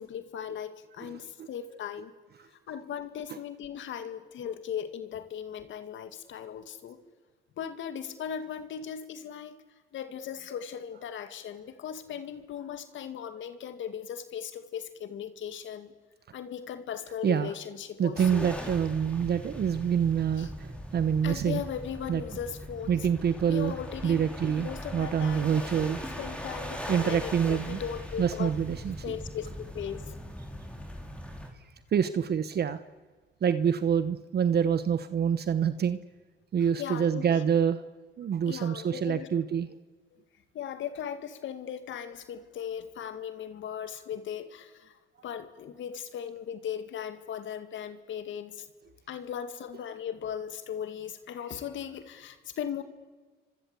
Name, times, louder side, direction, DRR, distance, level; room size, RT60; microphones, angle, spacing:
voice 1, 0.0-2.1 2.5-7.0 7.6-9.6 9.9-15.9 16.3-18.5 20.4-20.5 21.2-23.1 23.5-25.9 26.2-28.5 29.0-30.1 36.8-37.4 38.5-39.3 40.1-40.2 40.5-48.7 49.1-52.8, left 8 dB, 75° left, 10 dB, 2.1 m, -38 dB
voice 2, 1.0-1.5 3.3-3.4 17.2-17.5 18.0-21.6 22.1-22.2 22.9-23.8 24.0-26.0 26.9-27.8 28.2-29.2 31.9-32.8 33.4-36.0 36.5-37.8 38.2-39.7 44.1-44.2, right 8 dB, 55° right, 12 dB, 1.1 m, -27 dB
sound 1, 18.2-31.5, equal, 5° left, 4.8 m, -40 dB
29.0 x 25.0 x 8.3 m, 1.4 s
cardioid pair, 90°, 20 cm